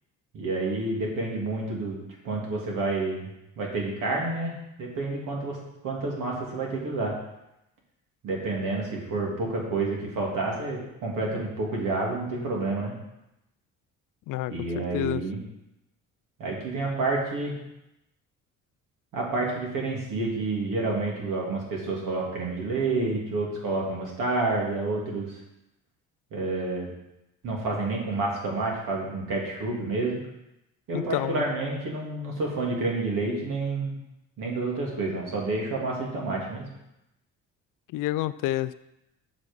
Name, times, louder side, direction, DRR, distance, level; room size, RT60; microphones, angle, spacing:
voice 1, 0.3-3.3 3.6-5.6 5.8-7.1 8.2-12.9 14.5-15.4 16.4-17.6 19.1-25.3 26.3-26.9 27.4-30.2 30.9-33.9 34.4-36.6, right 3 dB, 75° right, -2 dB, 2.9 m, -29 dB
voice 2, 14.3-15.2 30.9-31.4 37.9-38.7, left 15 dB, 75° left, 16 dB, 0.5 m, -29 dB
7.6 x 6.2 x 5.4 m, 0.89 s
cardioid pair, 90°, 32 cm